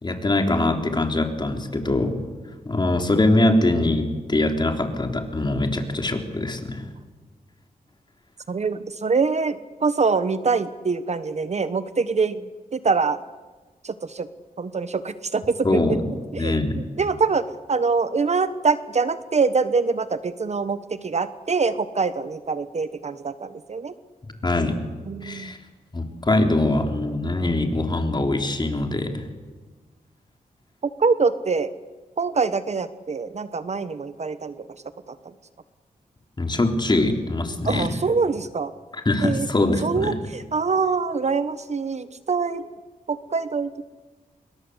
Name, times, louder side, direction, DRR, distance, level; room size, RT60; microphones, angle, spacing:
voice 1, 0.0-2.2 2.6-6.9 15.6-16.0 16.4-16.8 24.4-24.8 25.2-25.6 25.9-29.3 36.4-38.0 38.9-40.2, left 2 dB, 30° left, 4 dB, 3.6 m, -23 dB
voice 2, 8.5-12.4 12.7-13.2 13.8-14.3 14.6-15.8 16.3-23.9 25.1-25.5 31.0-31.7 32.2-34.5 37.7-38.7 39.2-39.5 39.8-42.7 43.1-43.8, right 4 dB, 50° right, 13 dB, 1.1 m, -24 dB
27.0 x 22.5 x 8.1 m, 1.3 s
wide cardioid pair, 90°, 15 cm